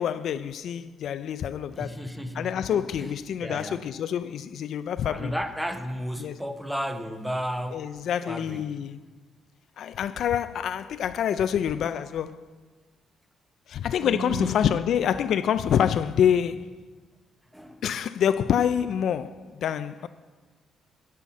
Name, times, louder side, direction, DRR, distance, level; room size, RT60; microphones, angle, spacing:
voice 1, 0.0-2.0 2.3-5.3 6.2-6.4 7.7-9.0 9.8-12.4 13.7-16.7 17.8-20.1, left 9 dB, 70° left, 0.3 m, -26 dB
voice 2, 1.7-3.8 5.0-8.7 11.6-11.8 14.0-14.5 17.5-17.8, equal, 5° right, 0.9 m, -34 dB
9.8 x 5.7 x 8.3 m
cardioid pair, 90°, 0 cm